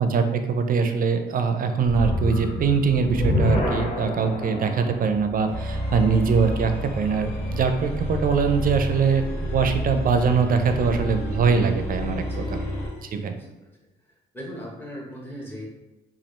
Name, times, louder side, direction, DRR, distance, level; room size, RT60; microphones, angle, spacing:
voice 1, 0.0-9.2 9.5-12.4 13.0-13.4, right 5 dB, 45° right, 7 dB, 0.5 m, -22 dB
sound 1, 1.8-7.1, left 1 dB, 30° left, 0.9 m, -28 dB
sound 2, 5.5-13.0, equal, 60° left, 1.2 m, -30 dB
voice 2, 12.2-12.7 13.3-13.7 14.0-15.7, equal, 10° left, -3 dB, 1.1 m, -39 dB
4.2 x 2.4 x 3.2 m, 1.0 s
cardioid pair, 90°, 20 cm